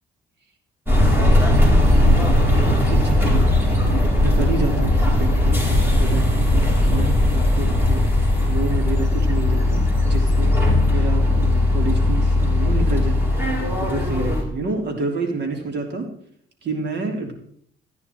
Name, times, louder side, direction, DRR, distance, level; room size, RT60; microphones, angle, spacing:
sound 1, 0.9-14.4, left 1 dB, 10° right, 4.1 m, -18 dB
voice 1, 1.6-2.2 2.5-3.6 4.2-8.1 8.5-10.6 10.9-13.2 13.8-16.1 16.6-17.3, right 3 dB, 60° right, 3 dB, 3.2 m, -29 dB
14.0 x 9.6 x 4.7 m, 0.66 s
cardioid pair, 90°, 20 cm